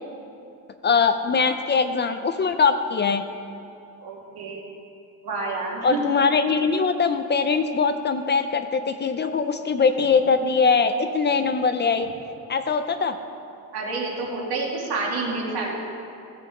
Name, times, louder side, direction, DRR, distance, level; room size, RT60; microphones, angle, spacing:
voice 1, 0.8-3.2 5.8-12.1 12.5-13.1, left 5 dB, 30° left, 8 dB, 0.4 m, -22 dB
voice 2, 4.0-4.6 5.2-6.0 13.7-15.8, right 3 dB, 85° right, -2 dB, 2.4 m, -28 dB
16.0 x 7.7 x 5.0 m, 2.7 s
cardioid pair, 175°, 37 cm